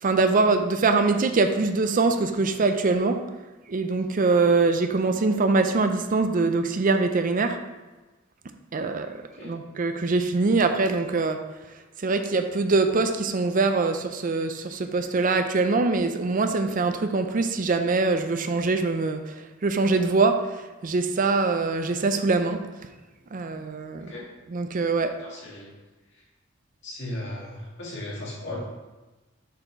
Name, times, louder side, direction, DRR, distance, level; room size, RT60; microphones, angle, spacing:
voice 1, 0.0-3.2 3.7-7.6 8.7-11.4 12.0-19.2 19.6-20.5 20.8-22.6 23.3-24.1 24.5-25.2, right 3 dB, 45° right, 7 dB, 0.5 m, -23 dB
voice 2, 25.2-25.7 26.8-28.6, left 1 dB, 65° left, -5 dB, 2.2 m, -36 dB
6.8 x 4.3 x 4.6 m, 1.2 s
head